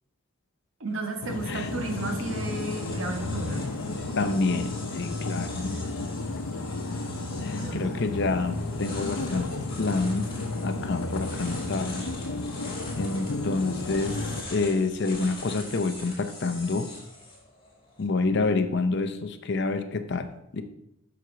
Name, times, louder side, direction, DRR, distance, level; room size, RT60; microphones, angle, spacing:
voice 1, 0.8-3.7 7.5-8.2, right 2 dB, 65° right, 3 dB, 1.2 m, -33 dB
sound 1, 0.9-18.1, left 2 dB, 25° left, 2.6 m, -44 dB
sound 2, 1.2-14.4, left 2 dB, 90° left, 0.7 m, -33 dB
voice 2, 4.2-5.7 7.4-9.5 9.8-10.3 10.6-12.1 12.9-14.1 14.5-16.9 18.0-20.6, left 3 dB, 50° left, 9 dB, 0.6 m, -28 dB
7.8 x 6.0 x 4.0 m, 0.82 s
head